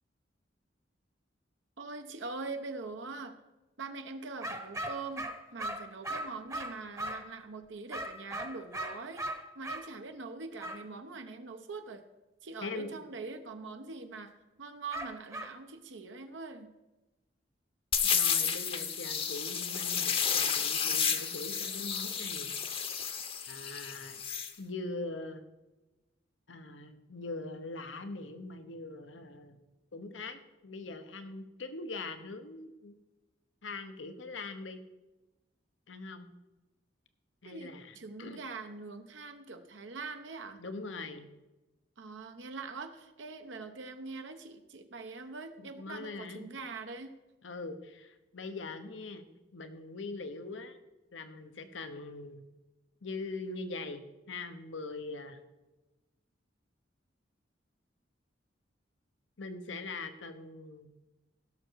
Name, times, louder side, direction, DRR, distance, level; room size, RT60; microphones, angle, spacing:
voice 1, 1.8-3.4 3.8-9.2 9.5-12.0 12.4-14.3 14.6-16.7 37.4-40.6 42.0-47.1, right 3 dB, 80° right, 6 dB, 0.9 m, -43 dB
sound 1, 4.4-7.3 7.9-9.9 10.6-10.8 14.9-15.6, right 1 dB, 15° right, 0.9 m, -38 dB
sound 2, 17.9-24.5, left 7 dB, 30° left, 0.8 m, -31 dB
voice 2, 18.0-22.5 23.5-24.2 24.6-25.5 26.5-29.6 29.9-33.0 33.6-34.8 35.9-36.3 37.4-38.4 40.6-41.3 45.6-46.5 47.4-49.3 49.5-50.8 51.1-52.4 53.0-55.4 59.4-60.9, left 3 dB, 90° left, 9 dB, 1.0 m, -42 dB
16.5 x 6.6 x 4.6 m, 1.1 s
head